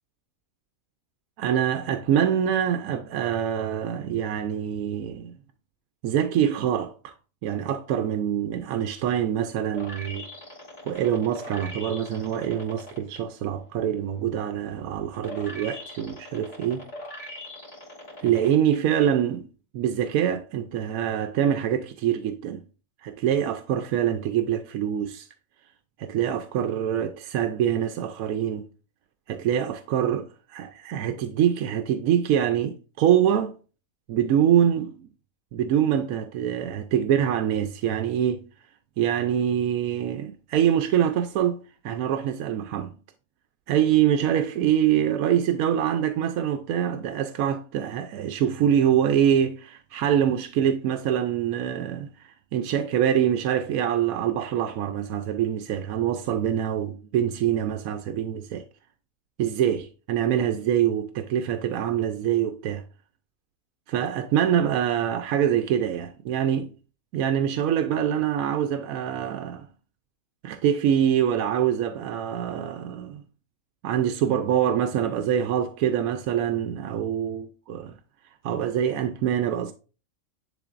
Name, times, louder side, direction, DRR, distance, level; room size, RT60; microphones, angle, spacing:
voice 1, 1.4-5.3 6.0-7.1 7.4-10.3 10.9-16.9 18.2-19.4 19.7-22.6 23.0-25.3 26.0-28.6 29.3-33.5 34.1-35.1 35.5-38.5 39.0-42.9 43.7-58.7 59.4-62.8 63.9-66.7 67.1-69.7 70.4-73.2 73.8-77.9 78.4-79.7, right 9 dB, 85° right, 1.0 m, -25 dB
sound 1, 9.7-13.2 13.6-18.7 19.2-19.3, left 1 dB, 55° left, 2.8 m, -41 dB
10.0 x 3.8 x 2.5 m
omnidirectional pair, 1.4 m